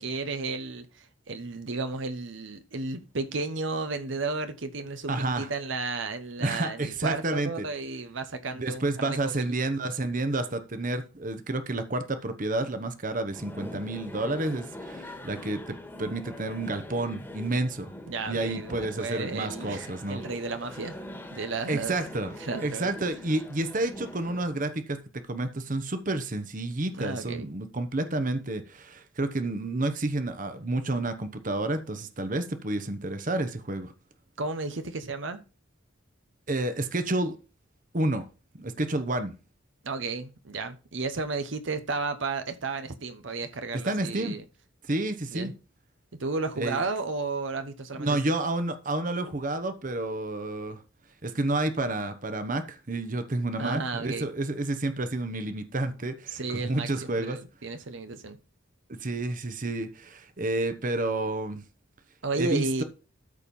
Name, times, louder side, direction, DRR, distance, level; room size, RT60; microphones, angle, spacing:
voice 1, 0.0-9.6 18.1-21.0 21.3-22.0 22.4-22.9 26.9-27.5 34.4-35.4 39.8-44.4 45.3-45.5 46.1-48.2 53.6-54.3 56.3-58.4 62.2-62.8, right 3 dB, 70° right, 1.0 m, -33 dB
voice 2, 5.1-5.5 6.4-7.7 8.6-17.9 18.3-20.2 21.7-25.0 25.3-33.9 36.5-37.4 37.9-38.3 38.5-39.3 43.8-44.4 44.9-45.5 46.6-46.8 48.0-50.8 51.2-57.4 59.0-61.6 62.3-62.8, right 2 dB, 40° right, 1.0 m, -30 dB
sound 1, 13.3-24.4, left 1 dB, 10° left, 1.6 m, -43 dB
13.0 x 4.4 x 5.4 m
head